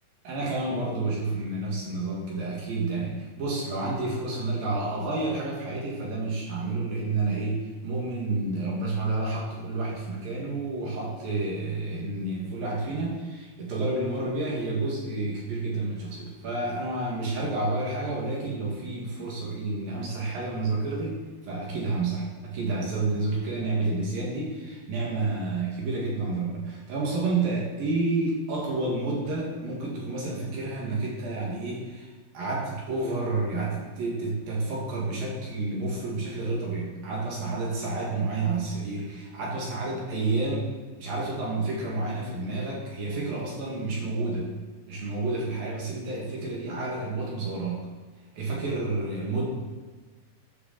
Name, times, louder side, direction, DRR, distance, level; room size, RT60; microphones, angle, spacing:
voice 1, 0.3-32.1 32.3-40.7 41.0-44.5 44.9-47.9 48.3-49.5, right 2 dB, 55° right, -3 dB, 3.4 m, -30 dB
12.0 x 6.7 x 6.8 m, 1.3 s
omnidirectional pair, 5.4 m